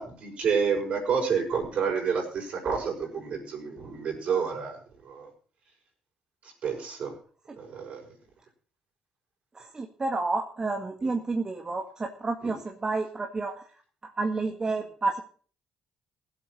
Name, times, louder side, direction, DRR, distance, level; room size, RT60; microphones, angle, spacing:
voice 1, 0.0-4.8 5.0-5.3 6.4-7.1 7.6-8.0 11.0-11.1 12.4-12.6, right 6 dB, 60° right, 2 dB, 5.9 m, -29 dB
voice 2, 9.7-13.6 14.2-15.2, right 3 dB, 30° right, 3 dB, 1.9 m, -30 dB
17.0 x 8.0 x 6.2 m, 0.43 s
hypercardioid pair, 55°, 2 cm